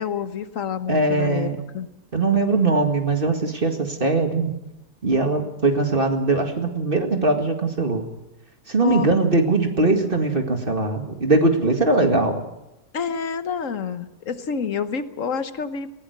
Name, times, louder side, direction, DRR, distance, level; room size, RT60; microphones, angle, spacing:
voice 1, 0.0-1.9 8.8-9.1 12.9-15.9, left 6 dB, 55° left, 11 dB, 1.4 m, -28 dB
voice 2, 0.9-1.6 2.1-4.5 5.0-8.0 8.7-12.4, right 3 dB, 35° right, 5 dB, 2.1 m, -21 dB
20.0 x 17.5 x 8.0 m, 0.94 s
omnidirectional pair, 1.8 m